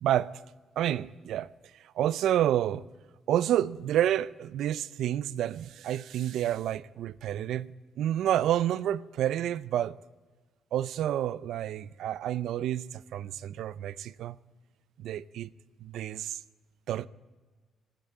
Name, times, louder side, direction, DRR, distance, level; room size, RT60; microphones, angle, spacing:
voice 1, 0.0-0.3 0.8-1.5 2.0-2.9 3.3-7.7 8.0-10.0 10.7-14.4 15.0-15.5 15.8-16.4 16.9-17.1, right 11 dB, 80° right, 0.5 m, -29 dB
18.0 x 9.2 x 8.5 m
cardioid pair, 90°, 0 cm